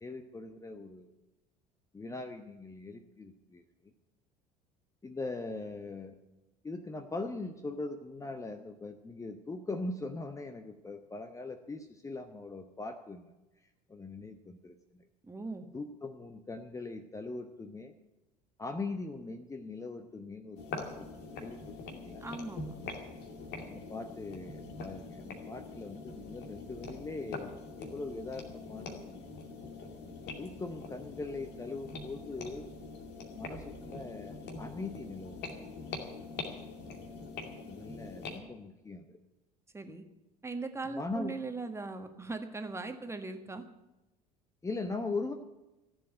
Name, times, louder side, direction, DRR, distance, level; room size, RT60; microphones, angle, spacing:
voice 1, 0.0-1.1 1.9-3.9 5.0-6.2 6.6-13.3 13.9-15.1 15.7-17.9 18.6-22.3 23.6-29.3 30.4-32.7 33.3-35.5 37.7-39.2 40.8-41.4 44.6-45.3, left 3 dB, 15° left, 7 dB, 1.0 m, -41 dB
voice 2, 15.2-15.7 22.2-22.7 39.7-40.0 40.4-43.6, right 3 dB, 15° right, 7 dB, 1.6 m, -39 dB
sound 1, 20.6-38.4, left 3 dB, 50° left, 2.5 m, -44 dB
15.0 x 7.8 x 9.9 m, 1.0 s
figure-of-eight pair, 65°, 21 cm